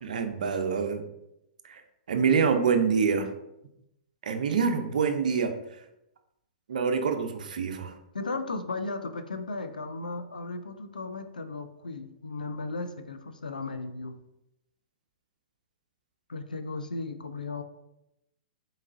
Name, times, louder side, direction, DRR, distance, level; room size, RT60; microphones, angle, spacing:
voice 1, 0.1-1.0 1.7-1.8 2.1-3.3 4.2-5.5 6.7-7.9, right 6 dB, 70° right, 6 dB, 0.6 m, -26 dB
voice 2, 8.1-14.2 16.3-17.6, left 3 dB, 90° left, 9 dB, 0.4 m, -35 dB
3.9 x 3.9 x 2.6 m, 0.85 s
hypercardioid pair, 115°, 4 cm